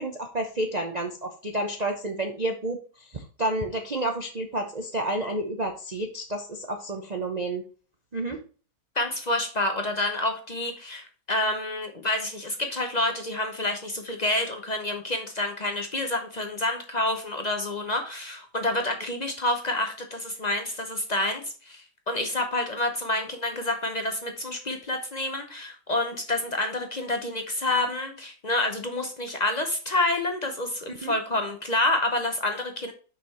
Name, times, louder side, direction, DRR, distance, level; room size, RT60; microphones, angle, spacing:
voice 1, 0.0-7.6 8.1-8.4 31.0-31.1, right 1 dB, 70° right, 4 dB, 0.3 m, -30 dB
voice 2, 9.0-32.9, left 2 dB, 60° left, 5 dB, 0.4 m, -28 dB
5.9 x 5.8 x 4.2 m, 0.39 s
omnidirectional pair, 2.1 m